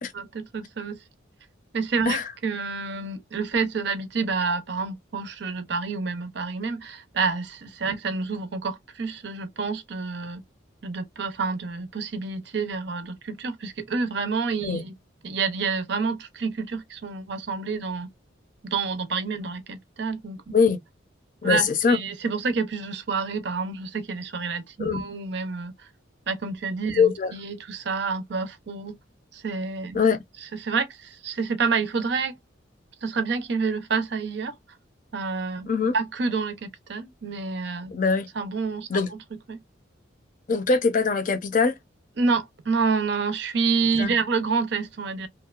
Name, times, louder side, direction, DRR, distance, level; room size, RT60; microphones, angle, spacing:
voice 1, 0.1-1.0 1.7-10.4 10.8-14.9 15.2-18.1 18.6-20.4 21.4-25.9 26.3-29.0 29.3-30.0 30.6-32.4 33.0-34.5 35.1-35.7 35.9-37.9 38.4-38.9 39.5-39.6 42.2-45.3, right 4 dB, 60° right, 0.5 m, -28 dB
voice 2, 21.4-22.0 24.8-25.0 27.0-27.3 29.9-30.2 35.7-36.0 37.9-38.3 38.9-39.1 40.5-41.8 44.0-44.1, left 5 dB, 40° left, 0.5 m, -22 dB
2.8 x 2.1 x 2.3 m
head